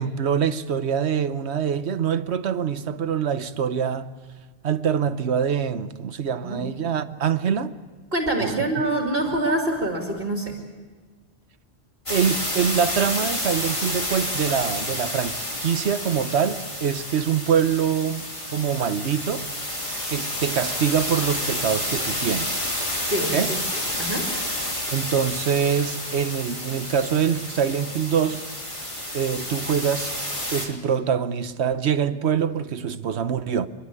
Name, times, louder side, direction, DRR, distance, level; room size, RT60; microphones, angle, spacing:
voice 1, 0.0-4.1 4.6-7.7 8.4-8.9 12.1-19.5 20.0-22.7 23.3-23.5 24.9-28.5 29.1-30.1 30.5-33.7, right 7 dB, 75° right, 1.2 m, -24 dB
voice 2, 8.1-10.5 23.1-23.4 24.0-24.2, right 1 dB, 55° right, 2.7 m, -25 dB
sound 1, 12.1-30.7, left 1 dB, 30° left, 3.2 m, -30 dB
29.5 x 11.5 x 9.8 m
omnidirectional pair, 1.1 m